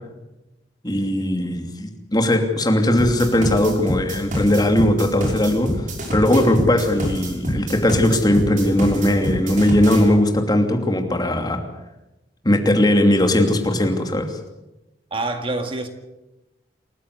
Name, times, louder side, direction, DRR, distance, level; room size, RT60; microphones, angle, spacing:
voice 1, 0.8-5.8 6.1-11.6 12.4-14.4, left 1 dB, 25° left, 4 dB, 2.9 m, -19 dB
sound 1, 3.0-10.0, equal, 45° right, 6.0 m, -26 dB
voice 2, 15.1-15.9, right 2 dB, 30° right, 6 dB, 2.0 m, -26 dB
28.0 x 15.0 x 8.4 m, 0.99 s
head